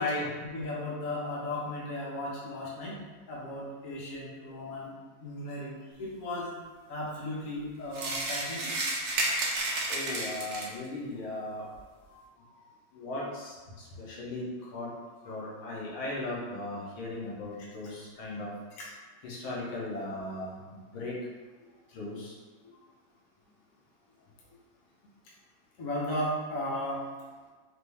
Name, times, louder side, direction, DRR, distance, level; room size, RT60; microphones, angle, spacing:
voice 1, 0.4-3.0 3.3-4.9 5.2-6.5 6.9-8.7 12.1-12.7 15.2-15.4 18.8-18.9 22.6-22.8 25.8-27.1, left 1 dB, 50° left, -5 dB, 1.1 m, -36 dB
sound 1, 7.9-10.9, right 2 dB, 70° right, 0.8 m, -31 dB
voice 2, 9.9-11.6 12.9-13.5 14.0-14.5 14.7-14.9 15.3-18.5 19.2-20.6 20.9-21.2 21.9-22.3, left 2 dB, 85° left, -5 dB, 1.8 m, -36 dB
4.7 x 2.6 x 3.4 m, 1.3 s
omnidirectional pair, 2.2 m